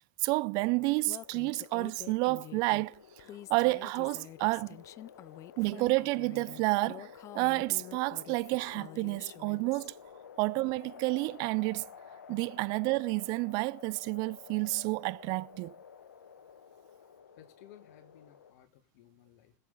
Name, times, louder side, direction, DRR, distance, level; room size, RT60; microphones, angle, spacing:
voice 1, 0.2-3.0 3.5-4.8 5.6-9.9 10.4-11.9 12.3-15.7, right 25 dB, 45° right, 0.5 m, -30 dB
sound 1, 0.6-18.5, left 7 dB, 85° left, 1.2 m, -52 dB
Female speech woman speaking, 1.1-9.9, left 13 dB, 35° left, 0.5 m, -48 dB
voice 2, 17.4-19.6, left 12 dB, 60° left, 2.1 m, -57 dB
20.5 x 7.2 x 3.7 m
hypercardioid pair, 100°, 9 cm